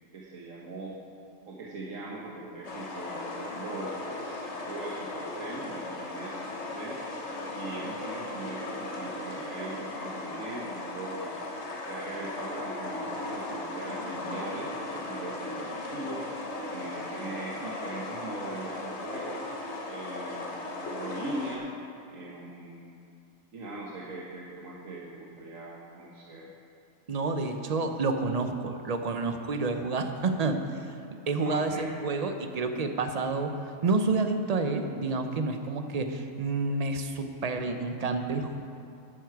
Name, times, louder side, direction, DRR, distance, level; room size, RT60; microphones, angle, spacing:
voice 1, 0.1-0.9 1.5-7.0 7.5-11.3 11.9-16.2 16.7-19.4 19.9-21.7 22.1-23.0 23.5-26.5 31.4-32.1, right 2 dB, 70° right, -4 dB, 1.5 m, -40 dB
sound 1, 2.6-21.6, left 2 dB, 55° left, 1.7 m, -37 dB
voice 2, 27.1-30.8 31.3-33.5 33.8-38.6, right 3 dB, 40° right, 6 dB, 0.6 m, -29 dB
12.0 x 9.7 x 4.7 m, 2.6 s
omnidirectional pair, 1.4 m